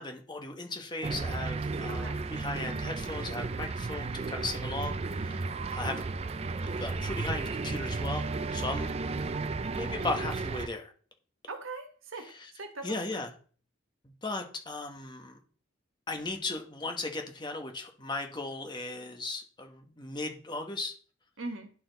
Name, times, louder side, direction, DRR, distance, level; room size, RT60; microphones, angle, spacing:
voice 1, 0.0-5.4 5.7-6.0 6.8-8.2 8.5-8.9 9.7-10.9 12.2-12.5 12.8-13.3 14.0-15.4 16.1-20.9, left 2 dB, 20° left, 4 dB, 1.0 m, -37 dB
sound 1, 1.0-10.7, right 3 dB, 30° right, 0.4 m, -33 dB
voice 2, 1.9-2.2 11.5-12.3 12.6-13.2 21.4-21.7, right 3 dB, 90° right, 6 dB, 1.4 m, -40 dB
11.0 x 4.3 x 3.9 m, 0.43 s
head